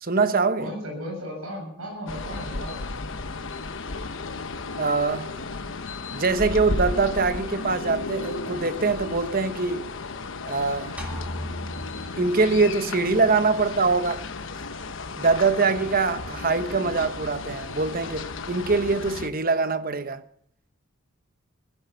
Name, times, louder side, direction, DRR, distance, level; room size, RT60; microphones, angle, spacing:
voice 1, 0.0-0.7 4.8-5.4 6.1-9.9 10.5-11.0 12.2-14.2 15.2-20.2, right 4 dB, 40° right, 0.9 m, -23 dB
voice 2, 0.6-2.8, equal, 80° right, 7.7 m, -35 dB
sound 1, 2.1-19.3, left 3 dB, 60° left, 1.1 m, -34 dB
sound 2, 11.0-12.8, equal, 5° right, 3.4 m, -36 dB
16.5 x 15.5 x 5.7 m
head